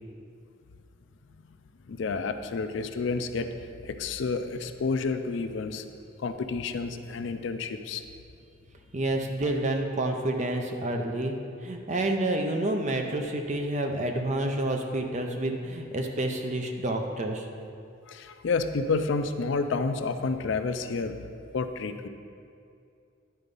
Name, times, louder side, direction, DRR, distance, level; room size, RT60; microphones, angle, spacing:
voice 1, 1.9-3.5 3.8-5.9 6.2-8.0 18.1-21.2 21.5-22.1, left 4 dB, 65° left, 9 dB, 0.4 m, -30 dB
voice 2, 8.9-11.4 11.6-17.4, right 1 dB, 35° right, 4 dB, 0.6 m, -29 dB
9.9 x 3.9 x 5.3 m, 2.4 s
head